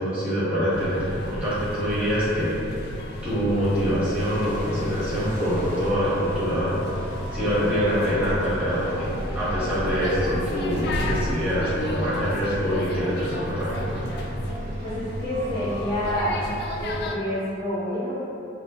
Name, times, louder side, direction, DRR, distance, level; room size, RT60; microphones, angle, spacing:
voice 1, 0.0-2.6 3.2-9.1 9.3-14.0, equal, 5° right, -13 dB, 1.5 m, -25 dB
sound 1, 0.7-17.2, equal, 60° left, 0.4 m, -32 dB
sound 2, 4.2-16.0, equal, 45° right, 0.7 m, -38 dB
voice 2, 14.8-16.4 16.8-18.2, equal, 25° left, -13 dB, 0.9 m, -28 dB
5.9 x 2.2 x 2.9 m, 2.8 s
head